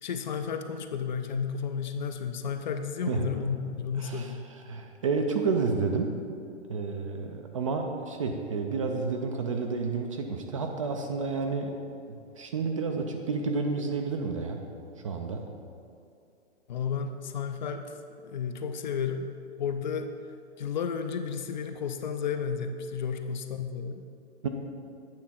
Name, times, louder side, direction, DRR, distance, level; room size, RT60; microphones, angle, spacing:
voice 1, 0.0-4.4 16.7-17.9 18.2-19.3 19.6-20.1 20.6-24.0, left 6 dB, 40° left, 7 dB, 0.4 m, -32 dB
voice 2, 4.0-4.3 4.7-6.2 6.7-11.8 12.1-14.7 15.0-15.5 24.4-24.5, right 4 dB, 30° right, 4 dB, 0.4 m, -30 dB
8.7 x 3.3 x 5.6 m, 2.4 s
hypercardioid pair, 135°, 35 cm